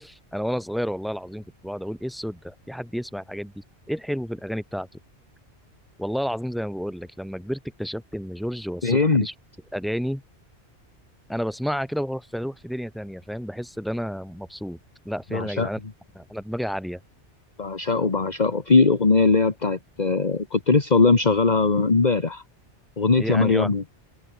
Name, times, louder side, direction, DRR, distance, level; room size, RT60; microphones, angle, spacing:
voice 1, 0.0-4.9 6.0-9.3 9.7-10.2 11.3-14.8 15.1-15.8 16.2-17.0 23.2-23.7, equal, ahead, 7.5 m, -31 dB
voice 2, 8.8-9.3 15.3-15.7 17.6-22.4 23.0-23.8, left 4 dB, 40° left, 1.7 m, -20 dB
omnidirectional pair, 1.2 m